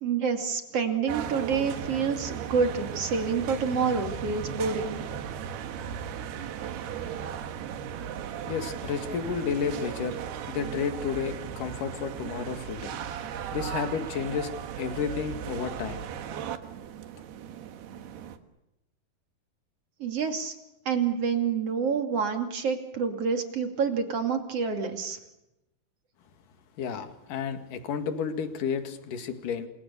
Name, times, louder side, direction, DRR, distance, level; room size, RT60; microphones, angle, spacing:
voice 1, 0.0-5.0 20.0-20.5 20.8-25.2, right 6 dB, 40° right, 5 dB, 3.2 m, -28 dB
sound 1, 1.1-18.4, right 8 dB, 85° right, 3.5 m, -36 dB
voice 2, 8.5-10.2 10.5-13.0 13.5-14.5 14.8-16.1 26.8-29.7, left 6 dB, 60° left, 7 dB, 3.5 m, -31 dB
28.5 x 26.5 x 7.0 m, 0.92 s
omnidirectional pair, 4.6 m